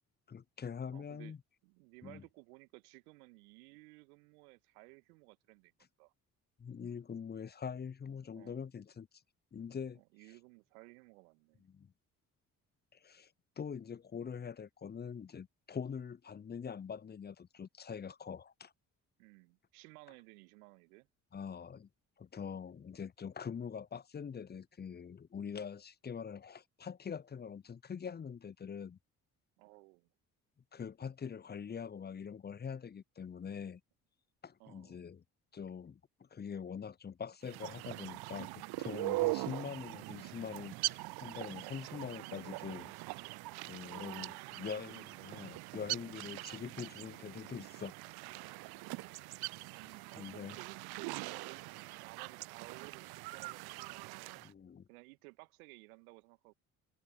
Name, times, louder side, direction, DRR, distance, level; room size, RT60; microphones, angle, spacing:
voice 1, 0.3-1.4 2.0-2.2 6.6-9.1 9.5-10.0 11.7-11.9 12.9-13.3 13.6-18.7 21.3-21.9 22.2-29.0 30.7-33.8 34.4-35.2 35.5-42.9 43.6-47.9 49.8-50.6 54.4-54.9, left 7 dB, 20° left, 0.7 m, -44 dB
voice 2, 0.9-1.4 1.6-5.7 6.0-6.1 8.3-8.6 10.0-11.7 19.2-21.1 29.6-30.1 34.6-35.0 39.2-39.4 43.8-45.5 50.1-54.4 54.9-56.5, right 27 dB, 75° right, 2.1 m, -56 dB
sound 1, 37.4-54.5, right 22 dB, 60° right, 0.7 m, -42 dB
figure-of-eight pair, 45°, 44 cm